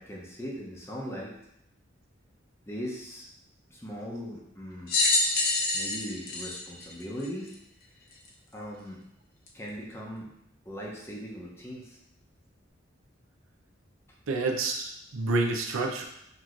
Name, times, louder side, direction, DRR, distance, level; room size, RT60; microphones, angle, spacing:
voice 1, 0.0-1.3 2.7-3.3 3.7-4.9 5.7-7.6 8.5-9.0 9.5-10.3 10.6-12.0, equal, 15° left, -3 dB, 0.7 m, -39 dB
sound 1, 4.9-7.5 8.2-8.3 9.5-9.6, left 2 dB, 50° left, 0.7 m, -27 dB
voice 2, 14.3-16.0, right 3 dB, 75° right, 3 dB, 0.6 m, -28 dB
5.9 x 2.9 x 2.5 m, 0.79 s
head